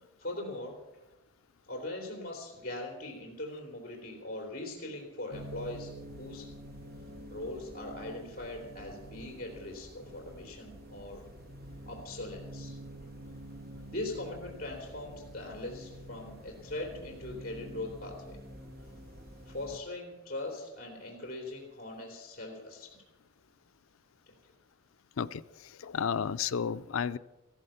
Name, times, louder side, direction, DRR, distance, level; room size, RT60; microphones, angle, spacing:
voice 1, 0.2-0.8 1.7-5.9 6.2-6.5 7.3-11.2 11.8-12.8 13.9-18.4 19.4-23.0 24.3-24.4, left 2 dB, 45° left, 0 dB, 3.3 m, -41 dB
sound 1, 5.3-19.8, right 1 dB, 50° right, 1.3 m, -47 dB
voice 2, 25.2-27.2, left 7 dB, 80° left, 15 dB, 0.5 m, -32 dB
15.0 x 14.5 x 5.7 m, 1.0 s
head